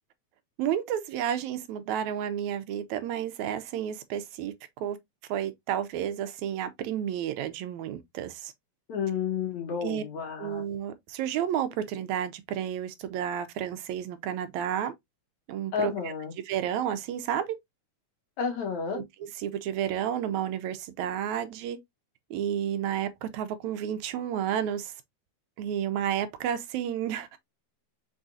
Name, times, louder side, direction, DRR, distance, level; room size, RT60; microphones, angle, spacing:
voice 1, 0.6-5.0 5.3-8.5 9.8-10.0 10.4-14.9 15.5-16.1 16.5-17.6 19.0-21.8 22.3-24.9 25.6-27.4, right 10 dB, 80° right, 1.9 m, -31 dB
voice 2, 8.9-10.6 15.7-16.3 18.4-19.0, left 6 dB, 70° left, 2.7 m, -31 dB
5.5 x 3.6 x 2.5 m
omnidirectional pair, 3.4 m